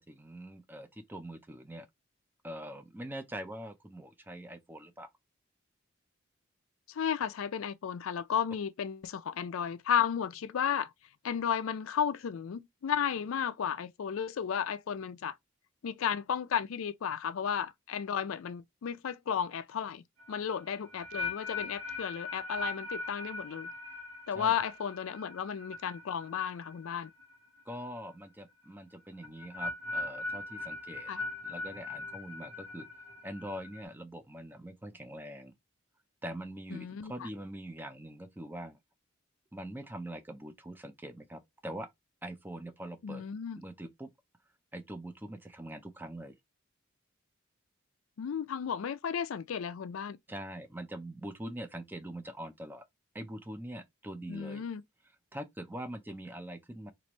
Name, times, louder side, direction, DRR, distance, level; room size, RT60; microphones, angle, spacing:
voice 1, 0.0-1.9 2.4-5.1 24.3-24.5 27.7-31.1 31.4-32.9 33.2-35.5 36.2-38.8 39.5-41.9 42.2-43.3 43.6-44.1 44.7-46.3 50.3-52.9 53.1-54.6 55.3-56.9, right 1 dB, 10° right, 0.5 m, -43 dB
voice 2, 6.9-10.9 11.2-15.4 15.8-23.7 24.3-27.1 31.1-31.2 36.7-37.3 43.0-43.6 48.2-50.2 54.3-54.8, left 8 dB, 80° left, 0.4 m, -33 dB
sound 1, 20.2-27.3 27.6-28.0 29.2-33.8, left 3 dB, 90° right, 1.0 m, -40 dB
3.2 x 2.5 x 2.9 m
head